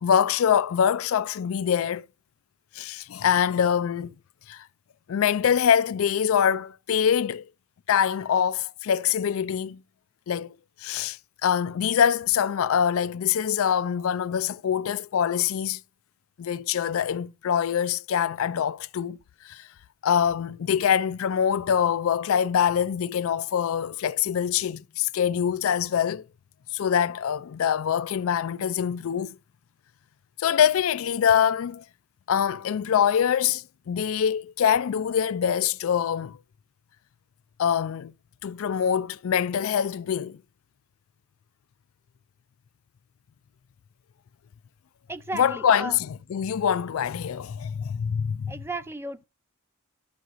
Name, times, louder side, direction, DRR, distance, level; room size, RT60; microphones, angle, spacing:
voice 1, 0.0-2.1 2.7-4.1 4.5-4.7 5.1-7.4 7.9-9.8 10.3-10.5 10.8-15.8 16.4-19.2 19.4-19.7 20.0-26.3 26.7-29.4 30.4-31.8 32.3-36.4 37.6-38.1 38.4-40.4 45.3-48.6, left 8 dB, 65° left, 0.4 m, -24 dB
voice 2, 45.1-46.0 48.5-49.2, right 2 dB, 10° right, 0.5 m, -35 dB
12.0 x 6.2 x 2.6 m
head